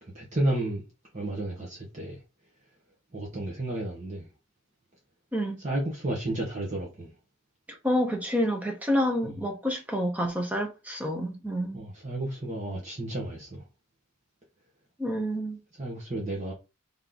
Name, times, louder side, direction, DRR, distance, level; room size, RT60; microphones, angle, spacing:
voice 1, 0.0-0.8 1.1-2.2 3.1-4.3 5.6-7.1 9.2-9.3 11.7-13.6 15.8-16.5, right 1 dB, 35° right, 1.1 m, -32 dB
voice 2, 7.8-11.8 15.0-15.6, equal, 5° right, 0.8 m, -28 dB
3.5 x 3.1 x 3.9 m
head